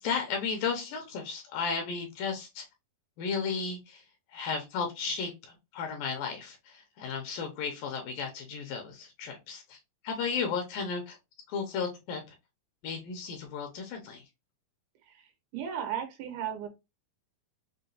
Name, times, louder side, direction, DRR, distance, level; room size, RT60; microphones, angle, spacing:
voice 1, 0.0-2.6 3.2-4.0 4.3-11.2 11.5-12.4 12.8-14.2, left 5 dB, 75° left, 2.3 m, -34 dB
voice 2, 15.1-16.7, right 9 dB, 90° right, 2.9 m, -36 dB
6.4 x 2.2 x 2.6 m
omnidirectional pair, 4.5 m